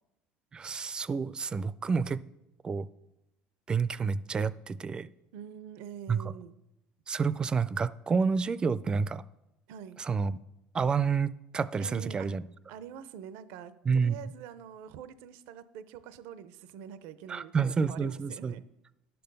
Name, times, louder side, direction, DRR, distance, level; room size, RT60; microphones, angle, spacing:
voice 1, 0.5-2.2 2.6-2.9 3.7-5.1 6.1-6.2 7.1-9.2 10.0-10.4 10.7-12.5 13.9-14.2 17.3-18.5, right 5 dB, 25° right, 17 dB, 0.4 m, -29 dB
voice 2, 5.3-6.5 9.7-10.0 11.8-12.3 12.7-18.6, right 8 dB, 75° right, 14 dB, 0.5 m, -45 dB
11.0 x 6.8 x 5.3 m, 0.89 s
supercardioid pair, 120°, 4 cm